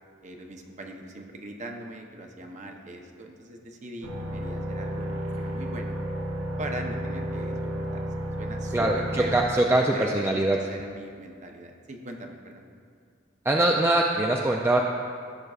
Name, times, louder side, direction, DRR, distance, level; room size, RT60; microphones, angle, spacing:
voice 1, 0.2-6.0 6.6-8.0 8.4-9.4 9.9-12.6, right 1 dB, 35° right, 3 dB, 0.8 m, -40 dB
sound 1, 4.0-9.4, equal, 85° right, 1.3 m, -32 dB
voice 2, 8.7-10.6 13.5-14.8, right 1 dB, 10° right, 0 dB, 0.3 m, -23 dB
15.0 x 6.6 x 2.4 m, 2.2 s
head